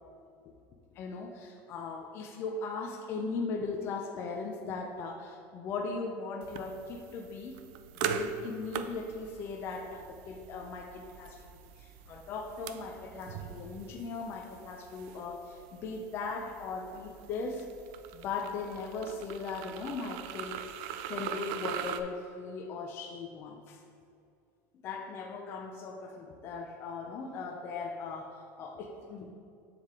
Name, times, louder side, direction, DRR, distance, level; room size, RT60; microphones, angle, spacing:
voice 1, 0.9-7.6 8.0-11.4 11.8-17.7 18.1-20.6 21.1-23.8 24.8-29.3, left 4 dB, 30° left, 2 dB, 0.4 m, -38 dB
sound 1, 6.4-22.0, right 8 dB, 55° right, 0.3 m, -42 dB
7.4 x 4.8 x 3.6 m, 2.5 s
cardioid pair, 170°, 8 cm